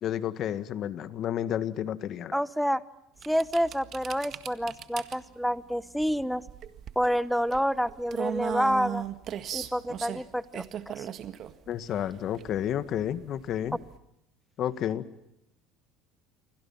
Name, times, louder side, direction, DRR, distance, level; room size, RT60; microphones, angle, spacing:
voice 1, 0.0-2.3 11.7-13.8 14.6-15.0, left 10 dB, 50° left, 12 dB, 1.8 m, -31 dB
voice 2, 2.3-2.8 3.3-6.4 7.0-9.0 9.5-10.6 10.9-11.1, equal, ahead, 16 dB, 1.0 m, -28 dB
sound 1, 3.2-14.0, right 9 dB, 50° right, 1.8 m, -38 dB
28.5 x 25.0 x 5.8 m, 0.82 s
supercardioid pair, 110°, 0 cm